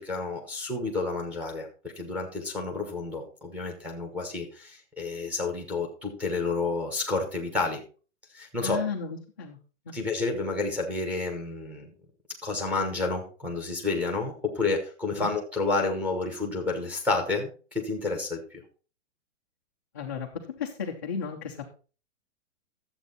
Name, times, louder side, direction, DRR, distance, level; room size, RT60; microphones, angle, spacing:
voice 1, 0.0-1.7 2.0-7.8 8.3-8.8 9.9-11.9 12.4-18.6, left 3 dB, 5° right, 2 dB, 1.1 m, -30 dB
voice 2, 8.6-9.6 9.9-10.0 15.2-15.3 19.9-21.6, left 6 dB, 15° left, -3 dB, 0.4 m, -34 dB
11.5 x 7.8 x 4.0 m, 0.36 s
hypercardioid pair, 170°, 38 cm